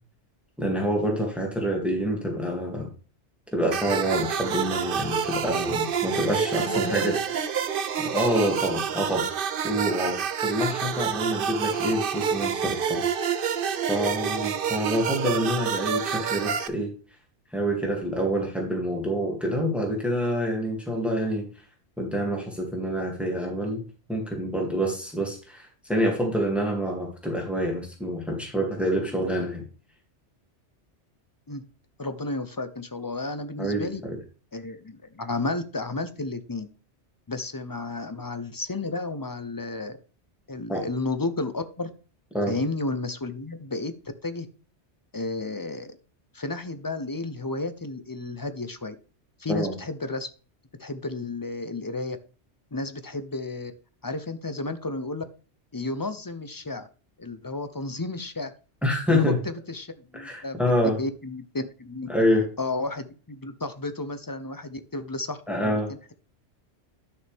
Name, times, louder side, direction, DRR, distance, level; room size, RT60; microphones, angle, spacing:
voice 1, 0.6-2.9 3.5-7.2 8.0-13.0 13.9-16.9 17.5-21.5 22.0-23.8 24.1-29.6 33.6-34.2 40.7-40.8 42.3-42.5 49.5-49.7 58.8-59.4 60.1-61.0 62.1-62.5 65.5-65.9, equal, ahead, 0 dB, 2.5 m, -27 dB
sound 1, 3.7-16.7, right 7 dB, 55° right, 0.8 m, -28 dB
voice 2, 6.6-7.2 31.5-31.6 32.0-34.0 34.5-36.7 37.3-40.0 40.5-41.9 42.5-43.9 44.2-44.5 45.1-46.0 46.3-49.0 49.4-50.3 50.8-52.2 52.7-53.7 54.0-55.2 55.7-56.9 57.2-58.5 59.1-60.6 60.8-62.1 62.6-65.8, left 2 dB, 25° left, 11 dB, 0.5 m, -32 dB
11.0 x 6.4 x 3.5 m, 0.37 s
omnidirectional pair, 1.2 m